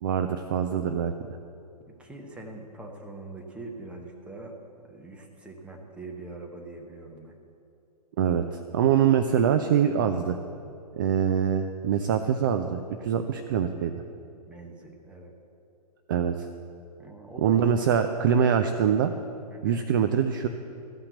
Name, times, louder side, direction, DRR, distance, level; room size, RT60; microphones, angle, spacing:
voice 1, 0.0-1.1 8.2-10.4 10.9-13.9 16.1-16.5 17.4-19.1 19.6-20.5, right 8 dB, 30° right, 8 dB, 0.4 m, -24 dB
voice 2, 1.9-4.5 4.8-7.3 14.5-15.3 17.0-17.7 19.5-19.8, right 2 dB, 5° right, 2 dB, 1.0 m, -43 dB
14.0 x 5.7 x 8.0 m, 2.7 s
figure-of-eight pair, 120°, 21 cm